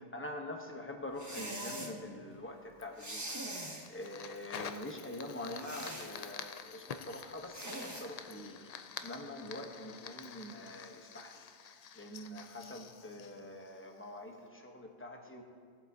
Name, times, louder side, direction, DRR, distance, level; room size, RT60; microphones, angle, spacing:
voice 1, 0.0-8.7 9.0-15.4, left 1 dB, 10° left, 2 dB, 0.9 m, -45 dB
sound 1, 1.2-1.9 3.0-3.9 5.6-6.1 7.5-8.1, right 1 dB, 15° right, 1.0 m, -42 dB
Fire, 2.8-14.2, left 7 dB, 60° left, 0.4 m, -48 dB
18.5 x 8.1 x 2.8 m, 2.1 s
omnidirectional pair, 1.2 m